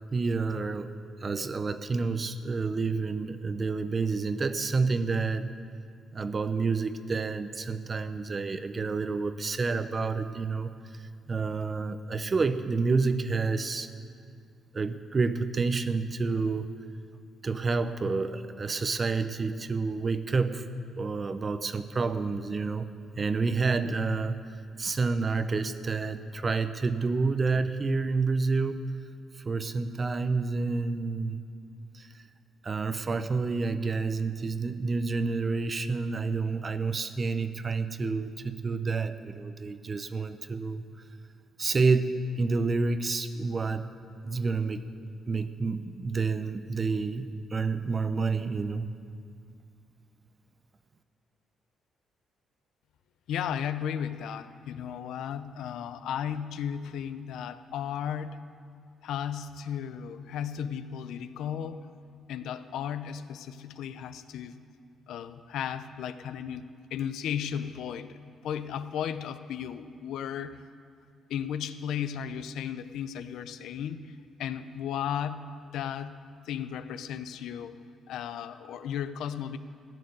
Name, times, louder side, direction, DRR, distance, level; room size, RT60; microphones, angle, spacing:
voice 1, 0.1-0.9 1.2-5.5 6.1-13.9 14.7-16.7 17.4-20.6 20.9-22.9 23.2-24.4 24.8-28.8 29.4-31.4 31.9-32.1 32.6-40.8 41.6-43.9 44.2-44.8 45.3-48.9, right 4 dB, 35° right, 11 dB, 0.7 m, -29 dB
voice 2, 53.3-58.4 59.0-61.9 62.3-64.6 65.1-68.2 68.4-70.6 71.3-76.2 76.5-77.8 78.1-79.6, left 8 dB, 80° left, 12 dB, 0.6 m, -35 dB
15.0 x 6.6 x 9.4 m, 2.2 s
cardioid pair, 90°, 0 cm